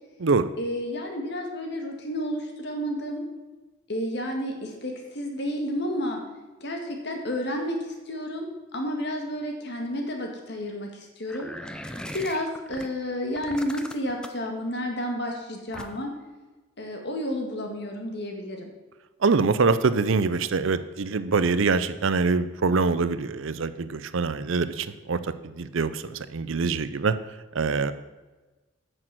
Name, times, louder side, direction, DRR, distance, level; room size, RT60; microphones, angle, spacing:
voice 1, 0.6-3.2 3.9-6.2 6.6-11.5 12.1-16.1 16.8-18.7, equal, 50° left, 3 dB, 1.9 m, -31 dB
sound 1, 11.3-12.9 13.3-14.5 15.7-16.2, equal, 5° left, 0.5 m, -39 dB
voice 2, 19.2-27.2 27.5-27.9, right 4 dB, 65° right, 14 dB, 0.6 m, -24 dB
9.0 x 6.4 x 7.6 m, 1.2 s
head